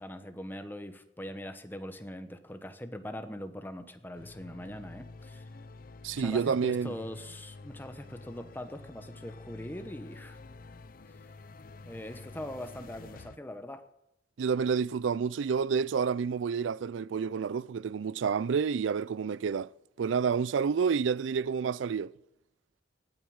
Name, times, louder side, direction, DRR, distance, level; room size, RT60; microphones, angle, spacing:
voice 1, 0.0-5.5 6.2-10.4 11.9-13.8, left 1 dB, 10° left, 1.0 m, -42 dB
sound 1, 4.1-13.4, left 3 dB, 50° left, 0.6 m, -49 dB
voice 2, 6.0-6.9 14.4-19.7 20.0-22.1, right 6 dB, 90° right, 0.4 m, -29 dB
18.0 x 9.3 x 6.4 m
head